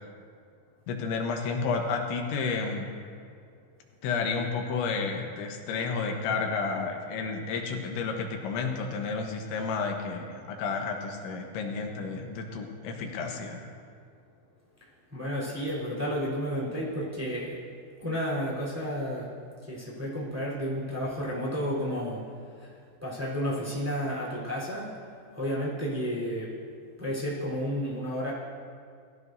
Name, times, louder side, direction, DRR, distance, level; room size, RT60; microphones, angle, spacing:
voice 1, 0.9-2.9 4.0-13.7, left 4 dB, 85° left, 2 dB, 3.5 m, -31 dB
voice 2, 15.1-17.6 18.0-19.3 19.6-22.3 22.6-24.9 25.3-26.5 27.0-28.3, equal, 5° right, -6 dB, 2.8 m, -32 dB
21.0 x 14.5 x 2.7 m, 2.2 s
omnidirectional pair, 5.2 m